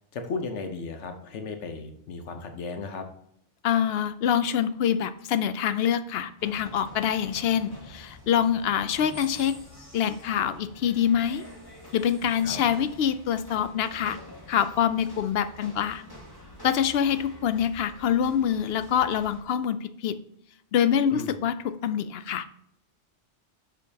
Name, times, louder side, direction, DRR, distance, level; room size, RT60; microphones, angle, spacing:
voice 1, 0.1-3.1 12.4-12.6 21.1-21.3, left 4 dB, 85° left, 6 dB, 1.2 m, -35 dB
voice 2, 3.6-9.6 9.9-11.5 11.9-14.2 14.5-16.1 16.6-20.2 20.7-22.5, left 9 dB, 65° left, 12 dB, 0.7 m, -25 dB
sound 1, 6.4-19.4, left 1 dB, 20° left, 2.0 m, -47 dB
8.0 x 6.4 x 2.8 m, 0.72 s
omnidirectional pair, 1.2 m